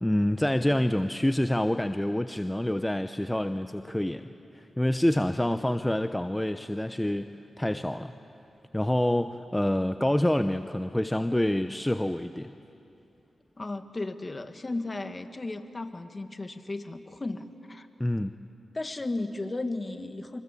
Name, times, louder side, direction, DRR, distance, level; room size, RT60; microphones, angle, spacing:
voice 1, 0.0-7.3 7.6-8.1 8.7-12.5 18.0-18.3, left 1 dB, 10° left, 9 dB, 0.9 m, -27 dB
voice 2, 13.6-17.9 18.7-20.4, left 2 dB, 35° left, 8 dB, 1.9 m, -35 dB
28.5 x 25.0 x 8.5 m, 2.7 s
supercardioid pair, 40°, 0 cm